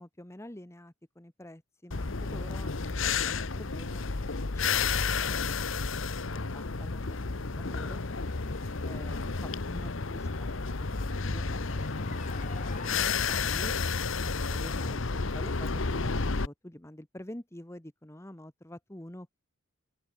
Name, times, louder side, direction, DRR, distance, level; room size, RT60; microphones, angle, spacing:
voice 1, 0.0-4.3 4.6-5.6 6.3-8.0 8.8-10.9 11.2-12.5 12.8-13.7 14.5-19.4, left 1 dB, 15° left, 1.1 m, -47 dB
sound 1, 1.9-16.5, left 4 dB, 65° left, 1.1 m, -31 dB
sound 2, 8.0-13.0, left 2 dB, 35° left, 2.7 m, -45 dB
open air
head